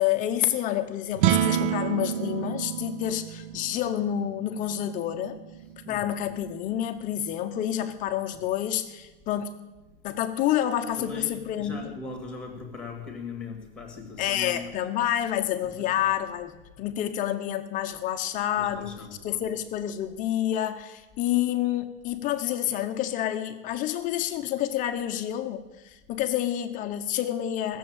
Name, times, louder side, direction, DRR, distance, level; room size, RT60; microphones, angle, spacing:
voice 1, 0.0-5.4 5.9-9.6 10.0-11.9 14.2-27.8, left 11 dB, 25° left, 8 dB, 0.8 m, -28 dB
sound 1, 1.1-7.5, right 11 dB, 55° right, 0.6 m, -30 dB
voice 2, 5.6-6.0 11.0-14.7 18.6-19.4, left 4 dB, 5° left, 3 dB, 2.3 m, -40 dB
16.5 x 7.3 x 8.9 m, 1.1 s
supercardioid pair, 170°, 31 cm